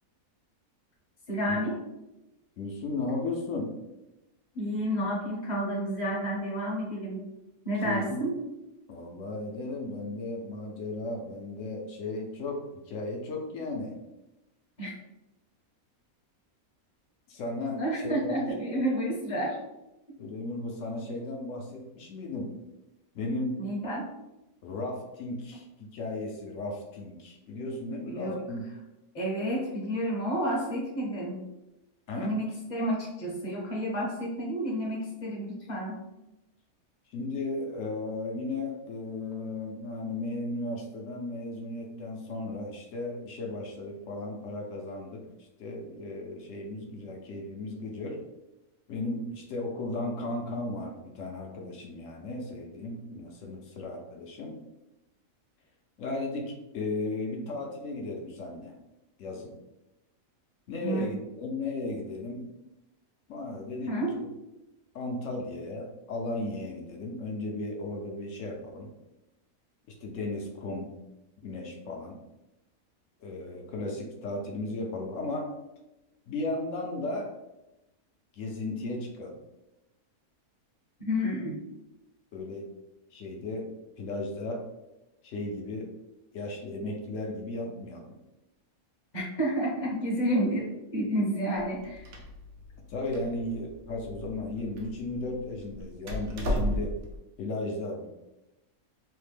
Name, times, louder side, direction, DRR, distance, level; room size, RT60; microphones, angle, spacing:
voice 1, 1.3-1.7 4.5-7.2 7.6-8.3 14.8-14.9 17.7-19.6 23.6-24.0 28.1-28.3 29.1-31.4 32.2-36.0 60.8-61.0 63.9-64.2 81.0-81.6 89.1-92.1, equal, 40° left, -3 dB, 0.8 m, -30 dB
voice 2, 2.6-3.7 7.8-8.2 8.9-14.0 17.3-18.4 20.2-22.5 23.1-23.6 24.6-28.6 32.1-32.3 37.1-45.2 45.6-48.2 48.9-54.6 56.0-58.7 59.2-59.5 60.7-62.5 63.3-64.3 64.9-68.9 69.9-70.9 71.4-72.2 73.2-75.5 76.3-77.4 78.3-79.4 82.3-82.7 83.1-84.7 85.2-85.9 86.3-88.2 92.9-97.0 97.4-98.1, left 2 dB, 70° left, 1 dB, 0.9 m, -35 dB
Door, 91.6-97.2, equal, 80° right, 1.1 m, -35 dB
3.3 x 2.1 x 3.2 m, 0.95 s
omnidirectional pair, 1.5 m